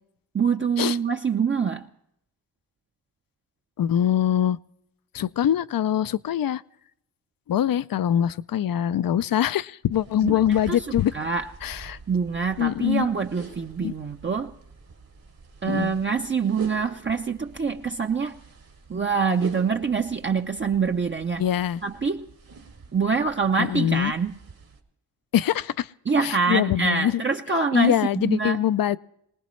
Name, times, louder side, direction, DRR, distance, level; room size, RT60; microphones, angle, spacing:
voice 1, 0.3-1.9 10.2-10.4 10.7-11.5 12.1-14.5 15.6-18.4 18.9-21.4 21.8-22.3 22.9-24.4 26.1-28.6, right 5 dB, 30° right, 3 dB, 0.6 m, -25 dB
voice 2, 3.8-4.6 5.1-6.6 7.5-11.1 11.6-12.0 12.6-13.1 13.8-13.9 15.7-15.9 21.4-21.8 23.6-24.1 25.3-25.9 26.2-27.2 27.7-29.0, left 10 dB, 65° left, 17 dB, 0.5 m, -23 dB
sound 1, 9.9-24.8, right 4 dB, 65° right, 2.1 m, -45 dB
22.5 x 19.5 x 3.1 m, 0.76 s
wide cardioid pair, 80°, 38 cm